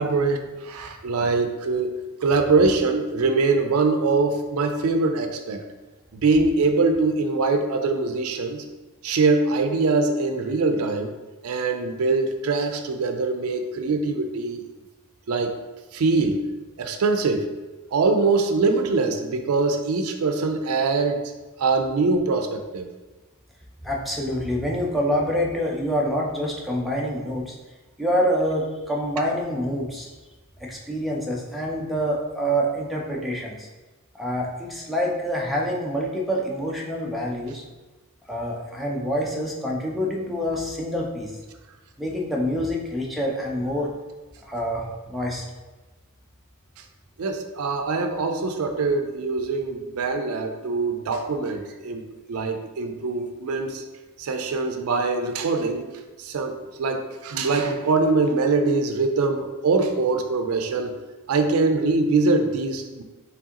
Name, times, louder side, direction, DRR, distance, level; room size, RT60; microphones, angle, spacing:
voice 1, 0.0-1.9 2.2-5.7 6.1-8.7 9.0-11.2 11.4-14.6 15.3-15.6 15.9-16.5 16.8-17.5 17.9-21.3 21.6-22.9 47.2-52.0 52.3-53.8 54.2-55.9 56.2-60.9 61.3-63.0, right 3 dB, 75° right, 6 dB, 0.4 m, -23 dB
voice 2, 23.8-27.5 28.0-30.1 30.6-33.7 34.1-37.6 38.3-41.4 42.0-43.9 44.5-45.4, equal, ahead, -3 dB, 0.5 m, -26 dB
4.7 x 3.3 x 2.9 m, 1.2 s
head